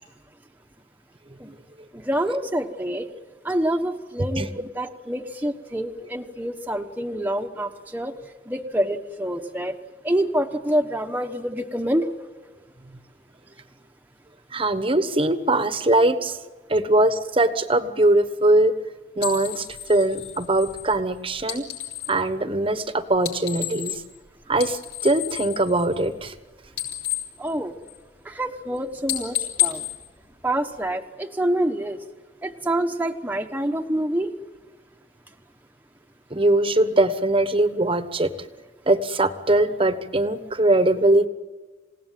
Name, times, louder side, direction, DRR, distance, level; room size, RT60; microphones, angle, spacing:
voice 1, 1.9-3.1 3.4-8.1 8.5-9.8 10.0-12.1 27.4-27.7 28.2-29.8 30.4-32.0 32.4-34.3, right 1 dB, 10° right, 3 dB, 1.1 m, -26 dB
voice 2, 14.5-16.4 16.7-18.7 19.2-21.6 22.1-24.0 24.5-26.3 36.3-38.5 38.9-41.3, right 2 dB, 30° right, 11 dB, 1.2 m, -21 dB
sound 1, 19.2-22.2 23.1-24.2 24.5-26.4 26.6-28.2 28.6-28.8 29.0-30.9, left 13 dB, 70° left, 7.3 m, -31 dB
28.0 x 17.5 x 9.2 m, 1.4 s
head